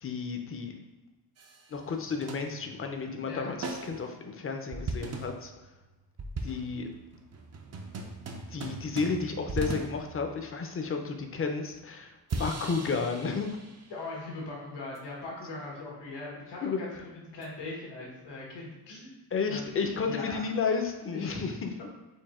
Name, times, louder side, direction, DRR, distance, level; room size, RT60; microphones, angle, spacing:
voice 1, 0.0-0.8 1.7-5.5 6.4-6.9 8.5-13.6 16.6-16.8 19.3-21.7, left 5 dB, 35° left, 5 dB, 0.6 m, -32 dB
sound 1, 1.4-1.8 2.1-3.0 3.6-4.1 4.7-10.9 12.3-14.1 15.0-15.1 17.4-17.5, right 3 dB, 40° right, 0.6 m, -39 dB
voice 2, 3.2-3.5 13.9-19.1 19.5-20.4 21.1-21.6, left 2 dB, 90° left, -3 dB, 1.4 m, -40 dB
4.6 x 2.7 x 4.2 m, 1.1 s
cardioid pair, 110°, 41 cm